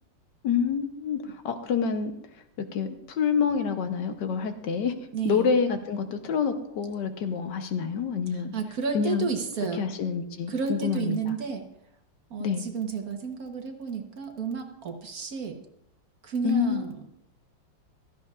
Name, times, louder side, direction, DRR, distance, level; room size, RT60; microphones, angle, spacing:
voice 1, 0.4-2.2 2.7-5.0 5.2-8.5 8.9-9.3 9.8-11.3 12.4-12.6 16.4-16.8, left 6 dB, 70° left, 7 dB, 1.4 m, -27 dB
voice 2, 5.1-5.5 8.3-9.8 10.5-11.6 12.3-15.6 16.2-17.0, right 5 dB, 55° right, 4 dB, 1.5 m, -31 dB
16.0 x 13.0 x 2.4 m, 0.80 s
omnidirectional pair, 2.0 m